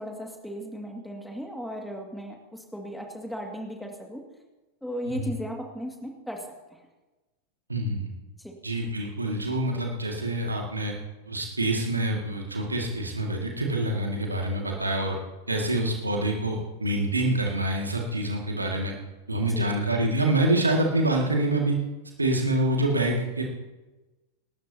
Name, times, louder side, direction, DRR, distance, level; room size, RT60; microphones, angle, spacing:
voice 1, 0.0-4.2 4.8-6.8 8.4-8.5 19.4-19.7, equal, ahead, 1 dB, 2.1 m, -36 dB
voice 2, 7.7-8.1 8.6-10.9 11.3-15.2 15.5-18.9 19.3-21.8 22.2-23.4, right 1 dB, 80° right, 1 dB, 2.1 m, -26 dB
27.0 x 13.0 x 2.9 m, 1.1 s
figure-of-eight pair, 90°, 0 cm